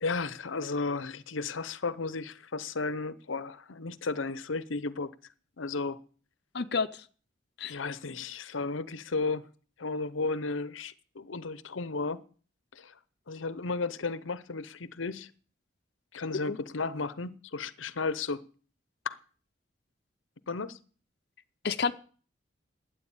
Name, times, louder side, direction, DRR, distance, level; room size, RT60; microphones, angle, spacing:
voice 1, 0.0-5.1 5.6-6.0 7.6-9.4 9.8-12.2 12.7-12.9 13.3-15.3 16.1-18.4 19.0-19.2 20.5-20.8, left 3 dB, 85° left, 0.8 m, -34 dB
voice 2, 6.5-7.1 7.6-7.8 16.5-16.6 21.6-21.9, left 5 dB, 55° left, 0.7 m, -30 dB
12.5 x 9.3 x 8.9 m
head